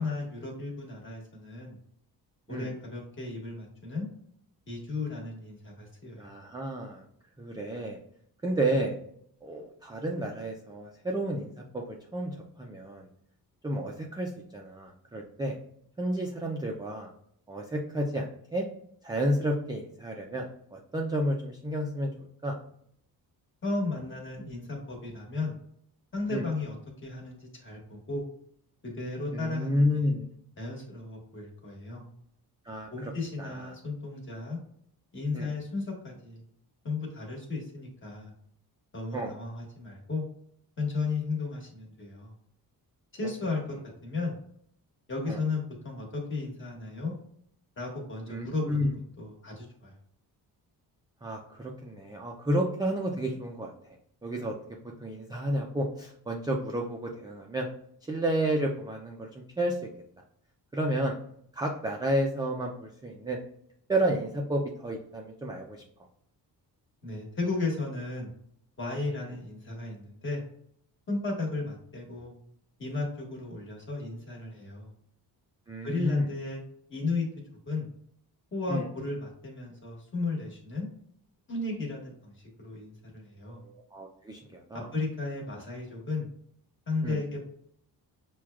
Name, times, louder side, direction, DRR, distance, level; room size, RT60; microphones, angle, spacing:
voice 1, 0.0-1.8 2.5-4.1 4.7-6.2 23.6-25.6 26.1-26.7 27.0-28.2 28.8-30.1 30.6-32.0 32.9-34.6 35.1-36.4 36.8-38.3 38.9-40.2 40.8-42.3 43.1-43.8 44.0-44.4 45.1-47.1 47.8-49.9 67.0-68.3 68.8-70.4 71.1-72.3 72.8-74.9 75.8-76.6 76.9-77.3 77.7-77.9 78.5-80.9 81.5-82.3 82.6-83.6 84.9-86.3 86.9-87.4, left 3 dB, 30° left, -1 dB, 1.3 m, -34 dB
voice 2, 6.2-7.0 7.4-8.0 8.4-9.0 9.4-13.1 13.6-15.6 16.0-17.1 17.5-18.7 19.0-22.6 26.3-26.4 29.3-30.3 32.7-33.1 33.4-33.7 35.3-35.5 39.1-39.3 45.3-45.4 48.3-48.9 51.2-53.7 54.2-54.6 55.0-57.7 58.1-59.8 60.7-61.1 61.5-63.4 63.9-65.8 75.7-76.3 78.7-78.9 83.5-84.9 87.0-87.2, right 1 dB, 10° right, 0 dB, 0.3 m, -31 dB
5.9 x 2.2 x 2.3 m, 0.67 s
cardioid pair, 140°, 39 cm